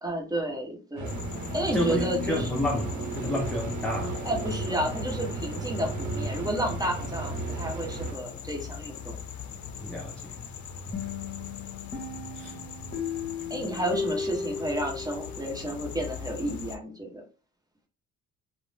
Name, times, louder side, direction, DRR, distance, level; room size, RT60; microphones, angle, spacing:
voice 1, 0.0-1.2 1.5-2.5 4.2-9.2 13.5-17.2, right 1 dB, 10° right, 1.0 m, -31 dB
sound 1, 1.0-16.8, left 7 dB, 65° left, 0.5 m, -41 dB
sound 2, 1.0-8.1, right 2 dB, 80° right, 0.8 m, -34 dB
voice 2, 1.7-4.2 9.8-10.5 10.8-11.1 12.3-12.6, left 1 dB, 5° left, 0.6 m, -31 dB
sound 3, 10.9-15.6, left 5 dB, 30° left, 1.0 m, -35 dB
2.5 x 2.0 x 3.3 m
cardioid pair, 90°, 30 cm